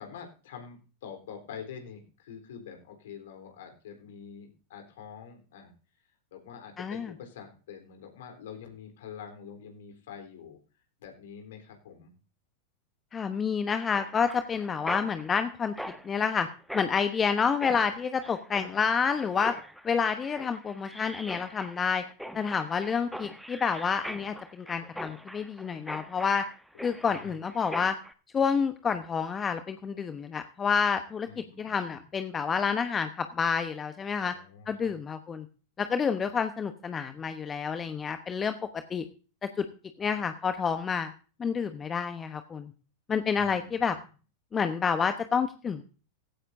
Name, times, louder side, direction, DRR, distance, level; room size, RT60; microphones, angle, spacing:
voice 1, 0.0-5.7 6.3-10.6 11.0-12.1 26.7-27.3 31.3-32.0 34.2-35.0 43.3-44.0, left 7 dB, 55° left, 4 dB, 3.8 m, -46 dB
voice 2, 6.8-7.1 13.1-15.7 16.0-16.5 16.7-19.6 19.8-22.0 22.3-26.4 26.8-28.0 28.3-31.3 31.6-34.3 34.7-35.5 35.8-38.6 38.9-39.0 39.4-39.6 40.0-41.1 41.4-42.7 43.1-44.0 44.5-45.8, left 6 dB, 20° left, 9 dB, 1.0 m, -29 dB
Mechanisms, 13.9-28.1, equal, ahead, 1.1 m, -43 dB
18.0 x 15.5 x 2.7 m, 0.38 s
figure-of-eight pair, 90°, 0 cm